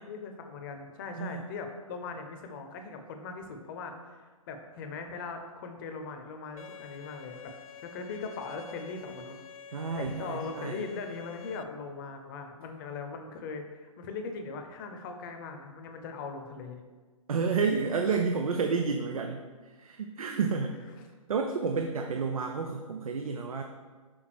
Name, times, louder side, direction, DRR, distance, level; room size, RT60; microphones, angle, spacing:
voice 1, 0.1-7.5 7.8-9.4 9.7-16.8, left 4 dB, 35° left, 5 dB, 0.9 m, -40 dB
Bowed string instrument, 6.6-11.6, left 5 dB, 75° left, 0.5 m, -48 dB
voice 2, 9.7-10.8 17.3-19.4 19.8-20.8 21.3-23.6, right 5 dB, 75° right, 4 dB, 0.6 m, -30 dB
6.3 x 3.6 x 6.2 m, 1.4 s
hypercardioid pair, 135°, 18 cm